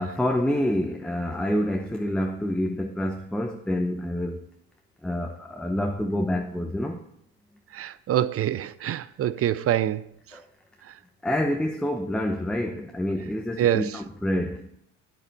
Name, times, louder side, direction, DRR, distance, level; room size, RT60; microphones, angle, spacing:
voice 1, 0.0-4.4 5.0-7.0 10.3-10.4 11.2-14.7, left 1 dB, ahead, 0.8 m, -27 dB
voice 2, 7.7-10.0 13.6-13.9, right 11 dB, 35° right, 0.5 m, -25 dB
9.0 x 8.7 x 4.1 m
supercardioid pair, 85°, 40 cm